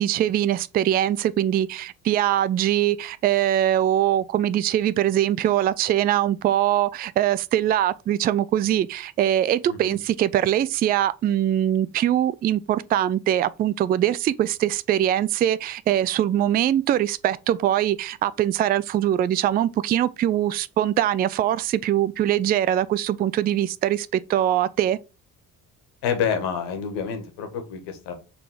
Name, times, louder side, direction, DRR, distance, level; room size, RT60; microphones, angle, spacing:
voice 1, 0.0-25.0, right 11 dB, 20° right, 0.4 m, -22 dB
voice 2, 9.7-10.0 26.0-28.1, left 7 dB, 55° left, 1.9 m, -28 dB
6.6 x 4.0 x 4.8 m
figure-of-eight pair, 50°, 48 cm